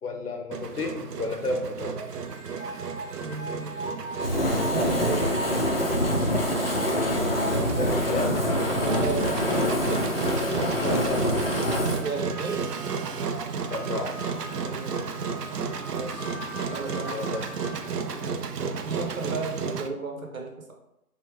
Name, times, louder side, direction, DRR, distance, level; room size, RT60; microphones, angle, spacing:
voice 1, 0.0-2.0 7.8-8.4 10.8-11.2 13.7-14.1 17.1-17.4 18.1-18.2, left 3 dB, 80° left, 4 dB, 0.9 m, -32 dB
Engine, 0.5-19.9, right 5 dB, 85° right, 0.6 m, -33 dB
sound 1, 2.0-19.1, right 1 dB, 5° left, 0.9 m, -41 dB
voice 2, 3.2-3.7 4.7-5.4 8.9-9.4 12.0-12.6 14.5-15.1 15.9-17.3 18.2-18.4 18.8-20.7, right 4 dB, 60° right, 2 dB, 1.0 m, -34 dB
Fire, 4.2-12.0, left 1 dB, 40° left, 0.5 m, -25 dB
3.5 x 2.9 x 3.0 m, 0.87 s
figure-of-eight pair, 155°, 46 cm